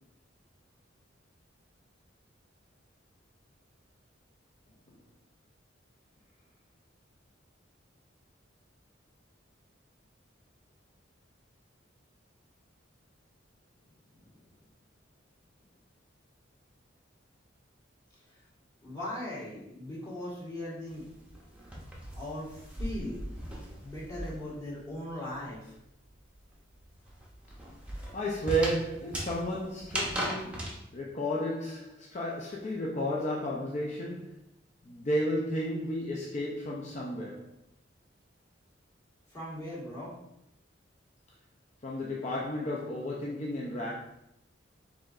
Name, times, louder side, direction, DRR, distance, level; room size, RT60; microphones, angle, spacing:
voice 1, 18.8-21.0 22.2-23.3 23.8-25.7 39.3-40.1, left 1 dB, 20° left, 1.6 m, -39 dB
sound 1, 20.9-24.6 24.9-30.8, equal, 5° right, 0.7 m, -38 dB
voice 2, 28.1-34.4 34.8-37.5 41.8-43.9, equal, 35° left, 0.5 m, -33 dB
4.9 x 3.7 x 2.5 m
head